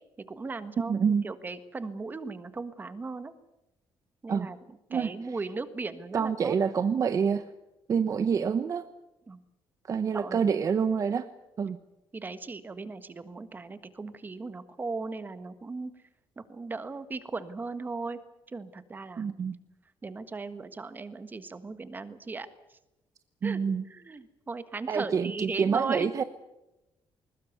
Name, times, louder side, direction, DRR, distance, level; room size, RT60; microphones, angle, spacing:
voice 1, 0.3-3.3 4.2-4.6 4.9-6.6 9.3-9.4 10.1-10.4 12.1-15.9 16.4-18.2 18.5-19.3 20.0-22.5 23.4-23.6 23.9-26.1, right 3 dB, 20° right, 12 dB, 1.5 m, -37 dB
voice 2, 0.9-1.3 4.3-4.5 4.9-5.4 6.1-7.4 7.9-8.9 9.9-11.3 11.6-11.8 19.2-19.5 23.4-23.8 24.9-26.2, right 6 dB, 35° right, 11 dB, 1.0 m, -27 dB
21.0 x 20.0 x 8.2 m, 0.94 s
cardioid pair, 160°, 9 cm